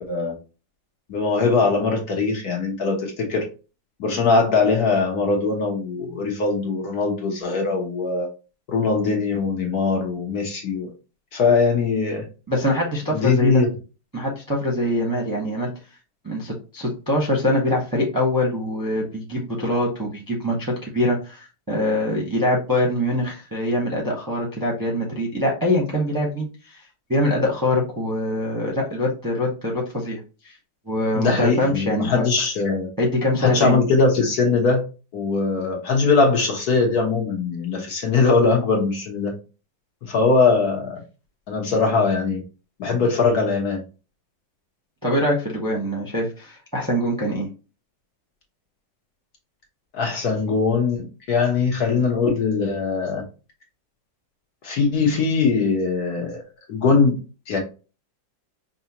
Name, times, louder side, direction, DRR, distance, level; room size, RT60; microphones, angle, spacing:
voice 1, 1.1-3.4 4.0-8.3 8.7-10.9 11.3-12.2 13.1-13.7 31.1-32.9 33.4-34.8 35.1-39.4 40.1-41.0 41.5-42.4 42.8-43.8 49.9-53.2 54.6-56.4 56.7-57.2 57.5-57.6, left 4 dB, 60° left, 1 dB, 1.5 m, -21 dB
voice 2, 12.5-13.6 14.1-15.7 16.2-26.8 27.1-30.2 30.4-30.6 30.9-32.3 33.0-33.8 45.0-47.5, left 1 dB, 15° right, -2 dB, 0.8 m, -23 dB
5.5 x 2.7 x 2.9 m, 0.32 s
omnidirectional pair, 2.0 m